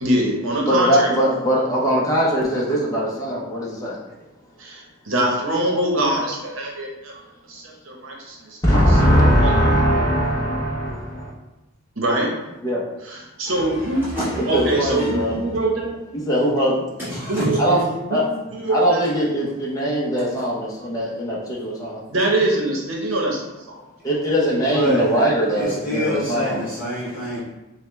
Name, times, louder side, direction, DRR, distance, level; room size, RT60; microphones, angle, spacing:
voice 1, 0.0-1.2 4.6-7.1 7.5-8.6 8.9-9.7 12.0-12.3 13.0-14.1 14.5-16.0 17.0-17.6 18.1-18.2 18.5-19.1 22.1-23.8 24.9-25.0 26.2-26.3, right 1 dB, 65° right, -1 dB, 0.9 m, -24 dB
voice 2, 0.7-4.0 8.6-11.3 12.6-12.8 14.3-15.3 16.1-16.9 17.6-17.8 18.1-18.2 18.7-22.0 24.0-26.6, equal, 15° left, -5 dB, 0.6 m, -20 dB
voice 3, 13.5-15.2 17.0-17.8 24.6-25.1 25.5-27.4, left 1 dB, 10° right, -12 dB, 1.3 m, -27 dB
5.4 x 2.2 x 3.1 m, 1.0 s
head